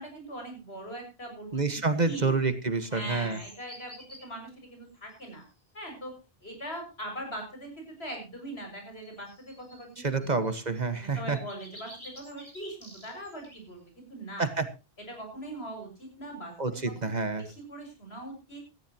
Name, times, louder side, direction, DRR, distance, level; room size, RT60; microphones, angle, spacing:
voice 1, 0.0-1.6 2.0-2.3 2.9-5.4 5.7-6.1 6.4-7.7 8.0-10.3 11.0-14.5 15.1-17.1 17.4-18.6, right 1 dB, 85° left, 3 dB, 6.7 m, -41 dB
voice 2, 1.5-3.4 10.0-11.4 14.4-14.6 16.6-17.5, right 4 dB, 45° right, 10 dB, 1.6 m, -28 dB
sound 1, 3.0-4.3 5.1-5.5 8.7-10.9 11.2-13.6 16.7-17.0, equal, 25° left, 5.5 m, -50 dB
18.0 x 14.5 x 2.9 m, 0.29 s
omnidirectional pair, 1.0 m